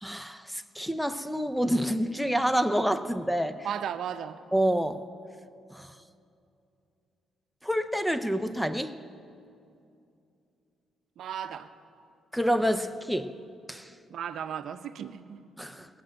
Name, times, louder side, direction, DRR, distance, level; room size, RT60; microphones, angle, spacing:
voice 1, 0.0-3.6 4.5-5.0 5.7-5.9 7.6-9.0 12.3-13.3 13.7-13.9 15.6-15.9, equal, ahead, 11 dB, 0.7 m, -28 dB
voice 2, 3.6-4.4 11.2-11.7 14.1-15.4, right 8 dB, 70° right, 10 dB, 0.7 m, -35 dB
19.0 x 7.7 x 7.7 m, 2.5 s
cardioid pair, 90°, 0 cm